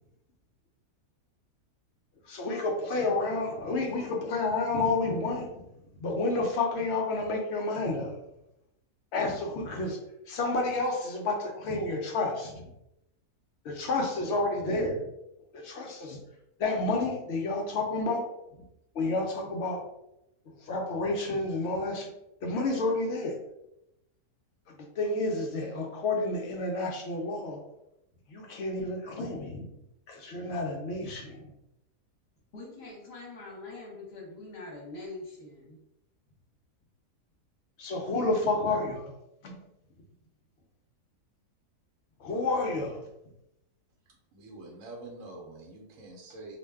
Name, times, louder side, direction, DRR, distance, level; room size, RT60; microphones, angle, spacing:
voice 1, 2.2-5.7 6.0-8.1 9.1-10.0 10.3-12.6 13.6-15.1 15.5-16.2 16.6-18.3 18.9-19.8 20.6-22.1 22.4-23.4 25.0-27.6 28.3-29.6 30.1-31.5 37.8-39.1 39.4-39.6 42.2-43.0, left 2 dB, 70° left, 1 dB, 0.6 m, -30 dB
voice 2, 32.5-35.8, left 2 dB, 50° left, -3 dB, 1.0 m, -43 dB
voice 3, 44.3-46.6, right 2 dB, 65° right, -2 dB, 0.9 m, -45 dB
2.5 x 2.1 x 3.3 m, 0.87 s
omnidirectional pair, 1.7 m